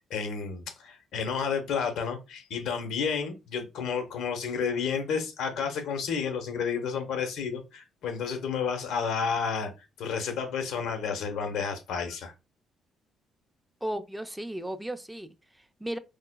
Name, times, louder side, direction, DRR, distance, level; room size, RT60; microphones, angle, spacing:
voice 1, 0.0-12.3, left 6 dB, 80° left, 0.8 m, -31 dB
voice 2, 13.8-16.0, right 1 dB, 5° right, 0.5 m, -35 dB
4.7 x 2.2 x 2.2 m
cardioid pair, 90°, 0 cm